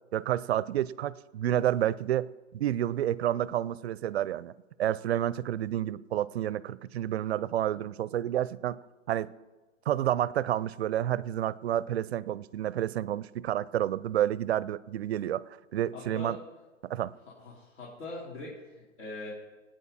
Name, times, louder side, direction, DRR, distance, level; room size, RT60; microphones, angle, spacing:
voice 1, 0.1-8.8 9.1-9.3 9.9-16.4 16.8-17.1, right 11 dB, 55° right, 19 dB, 0.6 m, -30 dB
voice 2, 15.9-16.4 17.4-19.3, left 2 dB, 60° left, -6 dB, 4.1 m, -42 dB
25.5 x 9.2 x 4.3 m, 1.2 s
hypercardioid pair, 155°, 39 cm